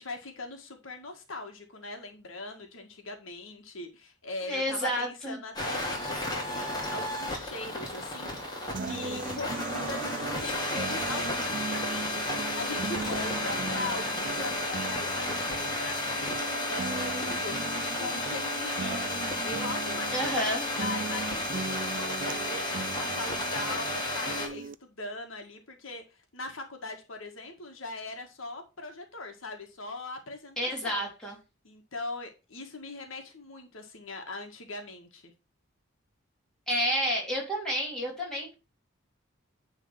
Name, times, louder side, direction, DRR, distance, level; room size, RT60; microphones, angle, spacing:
voice 1, 0.0-19.1 19.4-31.1 31.6-35.3, left 3 dB, 75° left, 4 dB, 1.8 m, -41 dB
voice 2, 4.4-5.4 20.1-20.6 30.6-31.4 36.7-38.5, equal, 5° left, -4 dB, 3.3 m, -30 dB
sound 1, 5.6-24.5, left 1 dB, 20° left, 2.5 m, -32 dB
sound 2, 8.7-24.8, right 4 dB, 40° right, 0.3 m, -38 dB
9.6 x 3.9 x 5.6 m, 0.29 s
head